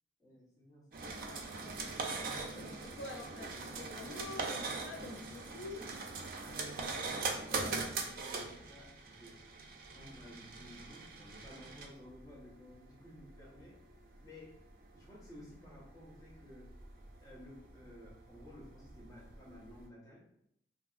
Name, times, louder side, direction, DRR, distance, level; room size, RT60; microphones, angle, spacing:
voice 1, 0.2-1.0 6.4-7.2 7.5-9.4 9.9-13.8 14.2-14.6 14.9-16.7 17.2-20.2, left 1 dB, 20° left, -6 dB, 0.9 m, -54 dB
sound 1, 0.9-19.9, right 4 dB, 50° right, 0.4 m, -42 dB
voice 2, 1.0-1.8 2.1-5.8 6.8-7.1, left 2 dB, 70° left, 2 dB, 0.3 m, -48 dB
2.7 x 2.7 x 2.4 m, 0.72 s
head